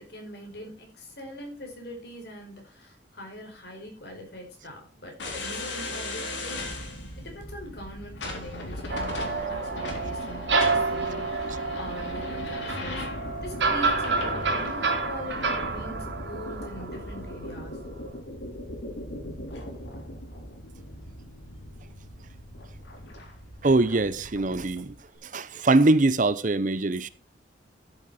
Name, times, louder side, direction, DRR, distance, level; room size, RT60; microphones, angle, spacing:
voice 1, 0.0-6.7 7.2-13.1 13.4-17.8, equal, 60° left, 5.2 m, -42 dB
sound 1, 5.2-24.9, left 1 dB, 80° left, 3.7 m, -38 dB
sound 2, 8.9-17.7, right 3 dB, 70° right, 2.8 m, -29 dB
voice 2, 23.6-25.0 25.2-27.1, right 2 dB, 45° right, 0.7 m, -22 dB
13.5 x 8.1 x 4.2 m
head